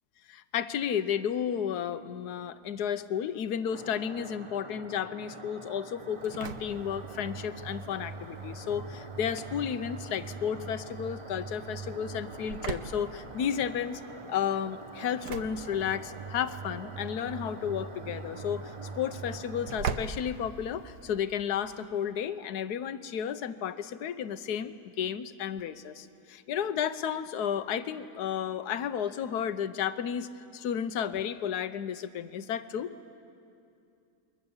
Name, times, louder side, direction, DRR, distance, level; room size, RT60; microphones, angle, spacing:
voice 1, 0.3-14.0 14.3-32.9, left 8 dB, 65° left, 12 dB, 1.3 m, -32 dB
sound 1, 3.7-19.8, right 3 dB, 40° right, 0.4 m, -46 dB
Engine / Slam, 6.0-21.1, right 5 dB, 65° right, 1.5 m, -41 dB
28.5 x 22.0 x 7.2 m, 2.6 s
omnidirectional pair, 1.9 m